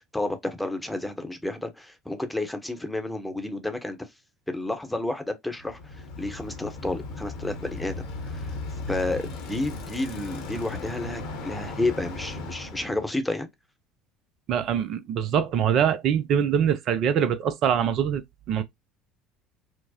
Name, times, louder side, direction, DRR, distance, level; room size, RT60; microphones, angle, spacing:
voice 1, 0.0-4.0 4.5-8.1 8.3-8.6 8.9-13.5, left 2 dB, 5° left, 0.8 m, -31 dB
Bicycle, 5.6-13.1, left 3 dB, 65° left, 0.9 m, -36 dB
voice 2, 14.5-18.2 18.5-18.6, right 8 dB, 50° right, 0.4 m, -23 dB
4.4 x 2.0 x 2.8 m
figure-of-eight pair, 65°, 0 cm